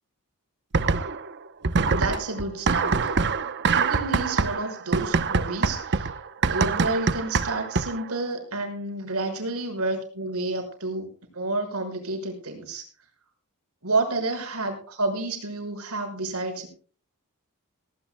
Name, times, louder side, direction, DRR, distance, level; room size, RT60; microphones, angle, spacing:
sound 1, 0.7-1.3 1.6-8.1, right 4 dB, 55° right, 0.8 m, -24 dB
voice 1, 1.9-3.1 3.7-6.1 6.4-11.1 11.3-12.8 13.8-16.7, right 2 dB, 70° right, 4 dB, 5.9 m, -30 dB
18.0 x 18.0 x 2.2 m, 0.42 s
head